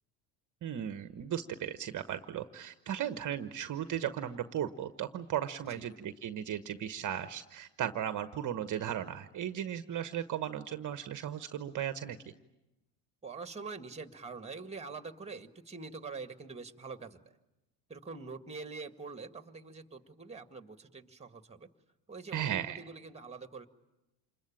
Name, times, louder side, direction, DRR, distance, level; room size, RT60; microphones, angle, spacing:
voice 1, 0.6-12.2 22.3-22.8, right 10 dB, 40° right, 10 dB, 1.2 m, -36 dB
voice 2, 13.2-17.3 17.9-21.7 22.1-23.7, right 4 dB, 15° right, 9 dB, 1.8 m, -45 dB
28.0 x 21.5 x 8.9 m, 0.98 s
supercardioid pair, 85°, 48 cm